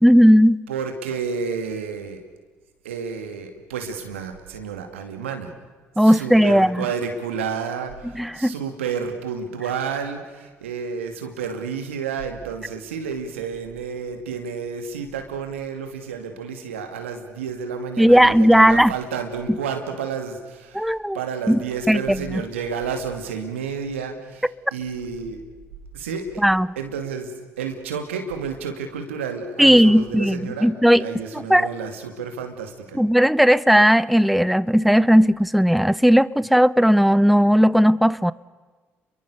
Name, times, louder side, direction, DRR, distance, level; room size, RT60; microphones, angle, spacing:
voice 1, 0.0-0.6 6.0-6.8 8.2-8.5 18.0-18.9 20.7-21.2 21.5-21.6 21.9-22.0 26.4-26.7 29.6-31.0 31.5-31.7 32.9-38.3, equal, ahead, 0.7 m, -16 dB
voice 2, 0.7-2.2 2.8-5.5 6.0-25.4 25.9-26.4 26.8-30.7 31.0-33.0, right 6 dB, 90° right, 2.5 m, -31 dB
29.5 x 23.5 x 6.7 m
hypercardioid pair, 50°, 7 cm